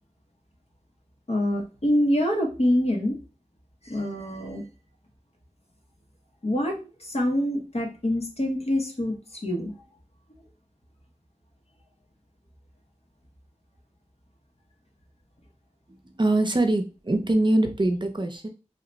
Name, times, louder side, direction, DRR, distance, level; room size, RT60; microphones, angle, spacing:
voice 1, 1.3-3.1 3.8-4.6 6.4-9.2 9.4-9.7, left 1 dB, 55° left, 0 dB, 1.0 m, -25 dB
voice 2, 16.1-18.5, right 2 dB, 40° right, 5 dB, 0.6 m, -23 dB
2.9 x 2.2 x 3.9 m, 0.31 s
wide cardioid pair, 45°, 13 cm